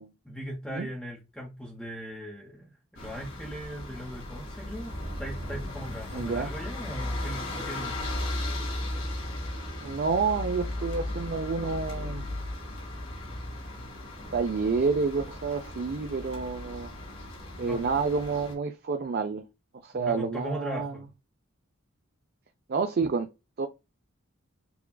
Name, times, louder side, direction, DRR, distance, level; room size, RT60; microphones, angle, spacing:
voice 1, 0.2-8.1 17.6-17.9 19.9-21.1, equal, 5° left, 0.9 m, -39 dB
sound 1, 3.0-18.5, left 1 dB, 85° left, 2.2 m, -36 dB
voice 2, 6.1-6.5 9.8-12.2 14.3-16.9 17.6-19.5 19.8-21.0 22.7-23.3 23.6-23.7, right 4 dB, 45° right, 0.4 m, -29 dB
6.9 x 2.4 x 2.2 m
head